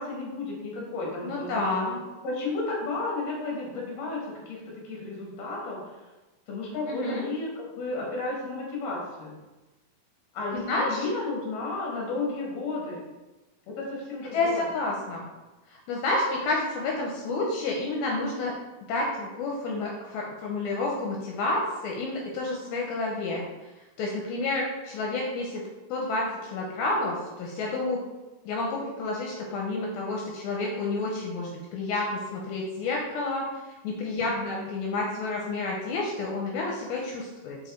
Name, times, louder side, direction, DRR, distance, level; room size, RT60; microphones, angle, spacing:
voice 1, 0.0-2.0 2.2-6.0 6.5-9.3 10.3-13.0 13.7-14.7 34.2-34.7, left 3 dB, 50° left, -3 dB, 2.5 m, -33 dB
voice 2, 1.2-2.0 6.9-7.3 10.7-11.0 14.3-15.3 15.7-18.5 18.9-23.5 24.0-25.6 25.9-28.0 28.5-33.5 33.8-37.6, left 2 dB, 80° left, -1 dB, 2.5 m, -29 dB
5.5 x 4.7 x 4.4 m, 1.1 s
omnidirectional pair, 4.4 m